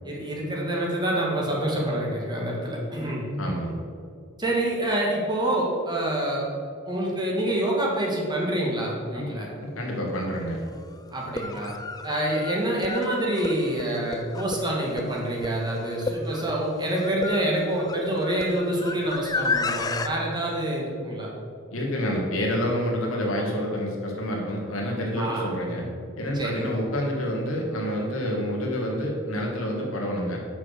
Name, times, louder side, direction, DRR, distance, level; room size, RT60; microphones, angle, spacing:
voice 1, 0.1-3.3 4.4-6.5 6.8-9.5 11.1-11.7 12.0-21.3 25.2-25.5 26.3-26.7, right 1 dB, 20° right, -3 dB, 1.6 m, -27 dB
voice 2, 3.4-3.8 9.1-9.3 9.6-10.7 21.7-25.9 26.1-30.4, equal, 70° left, -1 dB, 1.9 m, -28 dB
sound 1, 10.1-10.2 11.2-20.1, left 3 dB, 20° left, 0.3 m, -32 dB
7.1 x 6.1 x 6.5 m, 2.3 s
head